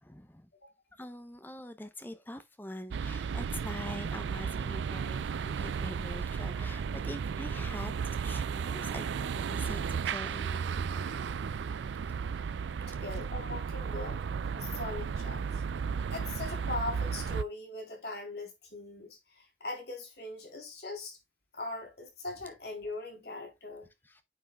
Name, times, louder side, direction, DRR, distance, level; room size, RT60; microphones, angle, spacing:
voice 1, 0.0-0.5 1.0-11.2 24.0-24.2, left 1 dB, 10° left, 0.6 m, -45 dB
sound 1, 2.9-17.4, right 6 dB, 75° right, 0.4 m, -34 dB
voice 2, 11.2-11.6 12.4-12.5 12.9-14.2 14.5-15.6 16.1-21.2 21.5-23.9, left 2 dB, 60° left, 3.3 m, -41 dB
9.6 x 5.5 x 2.2 m
head